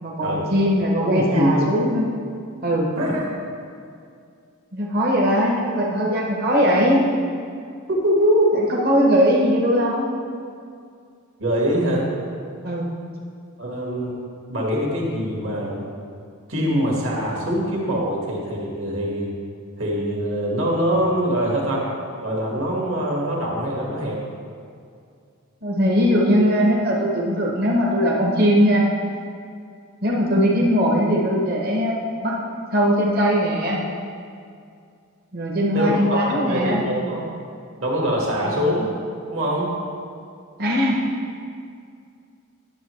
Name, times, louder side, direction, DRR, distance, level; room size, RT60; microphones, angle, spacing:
voice 1, 0.0-2.1 2.6-2.9 4.7-7.0 8.5-10.1 12.6-12.9 25.6-28.9 30.0-32.4 32.7-33.8 35.3-36.8 38.4-38.6 40.6-41.0, equal, 45° right, -3 dB, 0.8 m, -20 dB
voice 2, 1.0-1.6 2.9-3.2 8.0-8.4 11.4-12.1 13.6-14.2 14.5-15.8 16.5-19.3 19.8-21.8 22.2-24.2 35.7-37.3 37.8-38.9 39.3-39.7, equal, 70° right, -2 dB, 1.7 m, -23 dB
9.7 x 6.8 x 3.1 m, 2.3 s
head